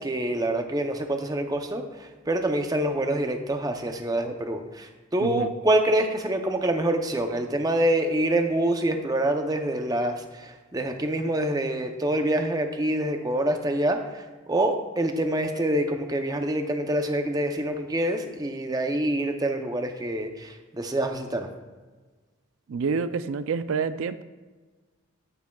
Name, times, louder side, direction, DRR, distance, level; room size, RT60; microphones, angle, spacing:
voice 1, 0.0-21.5, right 1 dB, 15° right, 5 dB, 0.5 m, -26 dB
voice 2, 5.2-5.5 22.7-24.2, right 5 dB, 65° right, 13 dB, 0.4 m, -28 dB
14.5 x 6.0 x 2.3 m, 1.3 s
head